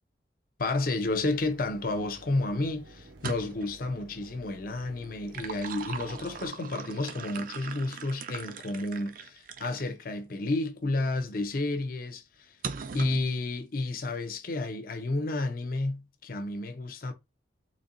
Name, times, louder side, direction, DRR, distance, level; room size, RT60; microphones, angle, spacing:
voice 1, 0.6-12.6 12.9-17.1, left 2 dB, 50° left, 0.6 m, -31 dB
Mechanisms, 1.0-6.5, right 2 dB, 80° right, 0.8 m, -52 dB
sound 1, 3.1-3.8 5.0-9.9 10.5-10.6 12.6-13.3, right 5 dB, 50° right, 0.4 m, -40 dB
4.1 x 2.7 x 2.5 m
head